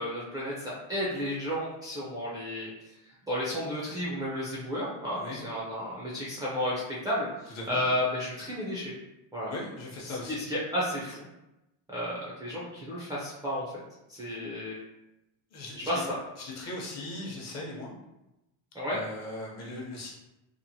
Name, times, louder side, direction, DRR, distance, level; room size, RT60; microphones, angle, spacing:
voice 1, 0.0-2.7 3.3-7.3 7.7-9.0 9.3-9.5 10.3-11.3 11.9-13.6 14.1-14.8 15.9-16.0 18.7-19.0, equal, 10° right, -7 dB, 0.4 m, -32 dB
voice 2, 7.5-7.8 9.5-10.4 14.1-14.3 15.5-15.9 16.4-17.9 18.9-20.1, left 1 dB, 40° left, -2 dB, 0.8 m, -39 dB
2.9 x 2.0 x 2.7 m, 0.93 s
cardioid pair, 145°, 41 cm